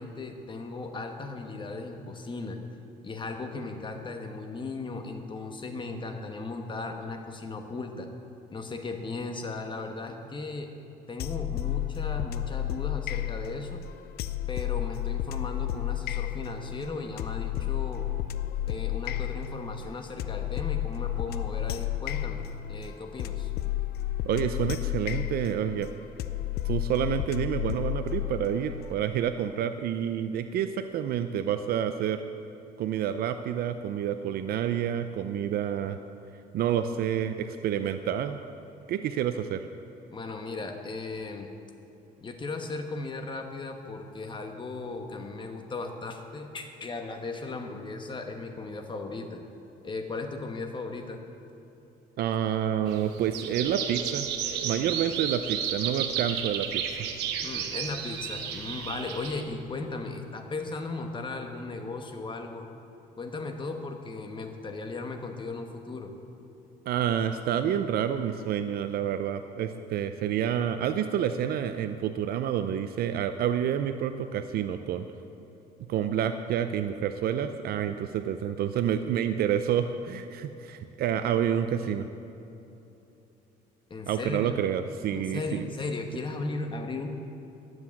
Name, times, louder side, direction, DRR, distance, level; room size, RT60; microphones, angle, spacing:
voice 1, 0.0-2.6 3.0-8.1 8.5-10.7 11.1-13.8 14.5-18.1 18.7-23.5 40.1-41.5 42.2-49.4 49.8-51.2 57.4-62.7 63.2-66.1 83.9-84.5 85.1-87.1, left 3 dB, 30° left, 5 dB, 1.3 m, -36 dB
sound 1, 11.2-28.9, left 12 dB, 70° left, 0.5 m, -32 dB
voice 2, 24.2-25.9 26.6-32.2 32.8-36.0 36.5-38.4 38.9-39.6 52.2-54.3 54.6-57.1 66.9-75.1 75.9-82.1 84.1-85.6, right 9 dB, 65° right, 9 dB, 0.6 m, -28 dB
sound 2, 52.9-59.4, right 8 dB, 85° right, 1.1 m, -33 dB
12.0 x 7.9 x 7.2 m, 2.9 s
cardioid pair, 110°, 17 cm